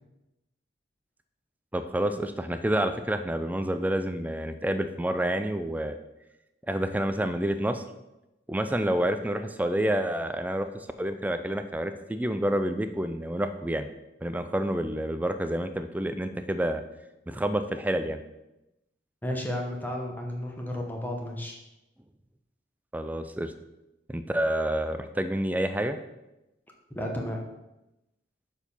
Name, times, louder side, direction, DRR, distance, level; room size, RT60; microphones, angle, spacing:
voice 1, 1.7-6.0 6.7-7.8 8.5-10.7 11.0-13.9 14.2-16.8 17.3-18.2 22.9-23.5 24.1-26.0, right 1 dB, 10° right, 9 dB, 0.4 m, -28 dB
voice 2, 19.2-21.5 26.9-27.4, left 1 dB, 10° left, 0 dB, 1.0 m, -32 dB
6.8 x 4.5 x 5.5 m, 0.94 s
head